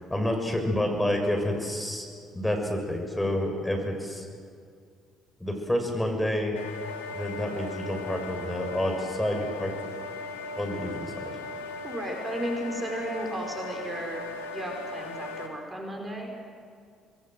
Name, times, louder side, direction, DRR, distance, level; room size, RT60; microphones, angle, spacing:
voice 1, 0.1-2.0 2.3-4.3 5.4-6.5 7.1-9.7 10.6-11.4, left 1 dB, 10° left, 3 dB, 6.6 m, -29 dB
sound 1, 6.6-15.5, left 3 dB, 90° left, 2.1 m, -38 dB
voice 2, 11.8-16.3, right 1 dB, 20° right, 1 dB, 5.1 m, -34 dB
27.0 x 21.5 x 7.8 m, 2.2 s
hypercardioid pair, 50°, 0 cm